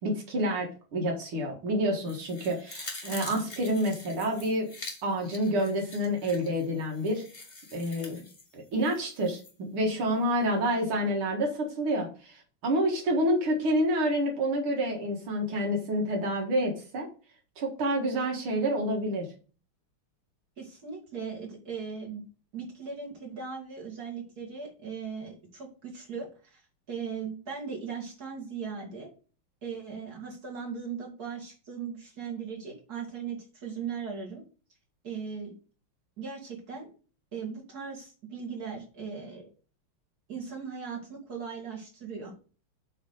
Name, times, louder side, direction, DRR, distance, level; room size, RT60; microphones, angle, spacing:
voice 1, 0.0-4.7 5.0-7.2 7.7-8.2 8.5-17.1 17.6-19.3, equal, 75° right, 1 dB, 2.5 m, -28 dB
sound 1, 2.0-9.5 9.9-10.0, left 3 dB, 30° left, 1.4 m, -45 dB
voice 2, 20.6-22.2 22.5-26.6 26.9-29.1 29.6-34.4 35.0-35.5 36.2-36.9 37.3-39.4 40.3-42.3, right 6 dB, 45° right, -1 dB, 2.8 m, -38 dB
8.2 x 3.5 x 6.5 m, 0.39 s
omnidirectional pair, 2.4 m